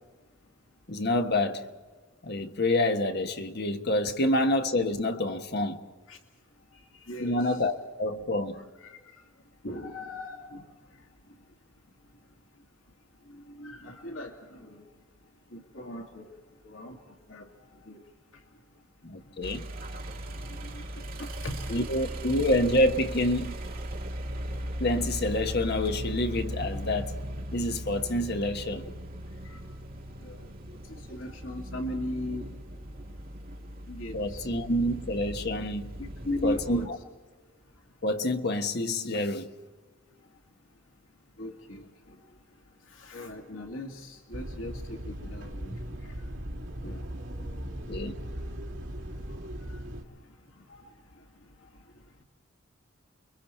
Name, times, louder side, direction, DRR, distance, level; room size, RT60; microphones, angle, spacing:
voice 1, 0.9-1.7 2.2-5.9 7.2-8.6 19.0-19.7 21.7-23.6 24.8-27.2 27.5-28.9 34.1-36.0 36.4-37.0 38.0-39.5 47.9-48.2, left 1 dB, 55° left, 1.3 m, -27 dB
voice 2, 7.1-7.5 8.8-8.9 9.6-10.6 13.6-14.3 14.7-14.8 15.5-16.3 16.6-17.0 17.3-17.4 17.9-18.0 20.7-20.8 21.2-21.6 30.2-30.4 31.1-32.5 33.9-34.4 36.0-36.9 41.4-41.8 43.0-44.0 44.3-44.7 45.1-45.8 46.8-47.0, left 1 dB, 85° left, 2.4 m, -37 dB
sound 1, 19.4-36.9, right 1 dB, 45° right, 2.0 m, -38 dB
sound 2, 44.3-50.0, equal, 70° right, 2.8 m, -38 dB
30.0 x 23.0 x 4.5 m
head